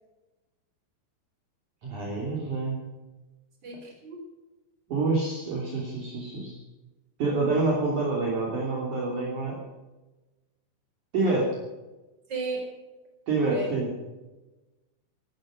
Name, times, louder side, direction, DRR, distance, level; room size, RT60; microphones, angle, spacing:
voice 1, 1.8-2.8 4.9-6.6 7.2-9.6 11.1-11.5 13.3-13.9, right 3 dB, 45° right, -3 dB, 4.0 m, -27 dB
voice 2, 3.6-4.2 12.3-12.7 13.5-13.7, right 3 dB, 20° right, 2 dB, 4.9 m, -34 dB
17.0 x 13.0 x 6.5 m, 1.1 s
omnidirectional pair, 5.7 m